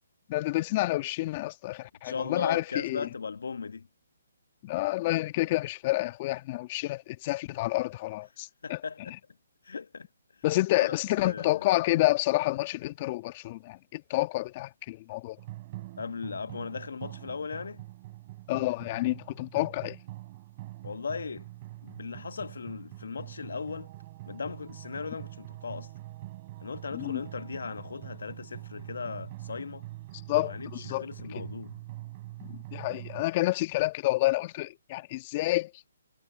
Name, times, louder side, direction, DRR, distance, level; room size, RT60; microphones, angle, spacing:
voice 1, 0.3-3.1 4.6-8.8 10.4-15.4 18.5-20.0 26.9-27.2 30.3-31.1 31.3-31.4 32.4-35.7, left 19 dB, 35° left, 1.6 m, -29 dB
voice 2, 2.0-3.9 8.6-9.1 9.6-10.1 10.7-11.7 16.0-17.8 20.8-21.5 21.8-23.9 24.3-25.9 26.6-29.8 30.4-31.7, left 5 dB, 70° left, 1.1 m, -37 dB
sound 1, 15.4-33.2, right 18 dB, 35° right, 4.2 m, -44 dB
hypercardioid pair, 140°, 0 cm